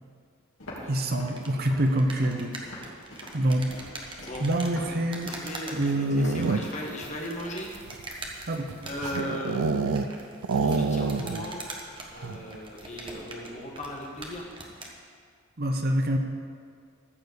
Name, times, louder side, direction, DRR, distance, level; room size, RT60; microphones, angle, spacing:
Walk footsteps, 0.6-7.0, left 1 dB, 65° left, 2.9 m, -44 dB
voice 1, 0.9-2.6 3.3-3.7 4.4-5.4 5.7-6.3 8.5-8.7 15.6-16.2, right 1 dB, 45° right, 4 dB, 0.8 m, -25 dB
sound 1, 1.0-15.0, right 2 dB, 25° right, 1.2 m, -43 dB
voice 2, 5.2-7.7 8.4-9.8 10.6-11.6 12.1-14.5, left 1 dB, 35° left, -1 dB, 1.7 m, -37 dB
sound 2, 5.9-6.9 7.6-10.2 10.4-11.5 11.8-11.9 12.2-12.6, right 4 dB, 80° right, 0.5 m, -28 dB
14.0 x 4.8 x 8.0 m, 2.2 s
head